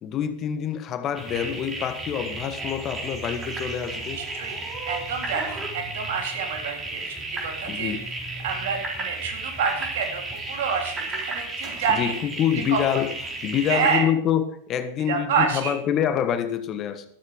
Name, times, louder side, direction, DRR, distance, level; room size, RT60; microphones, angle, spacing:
voice 1, 0.0-4.2 7.7-8.0 11.9-13.1 13.4-17.0, left 9 dB, 30° left, 1.4 m, -26 dB
sound 1, 1.1-14.0, right 2 dB, 20° right, 4.3 m, -33 dB
voice 2, 4.1-4.6 4.9-8.2 8.4-12.1 12.7-13.0 13.7-14.1 15.1-15.8, right 6 dB, 55° right, 3.9 m, -28 dB
13.5 x 13.5 x 3.8 m
figure-of-eight pair, 90°, 0 cm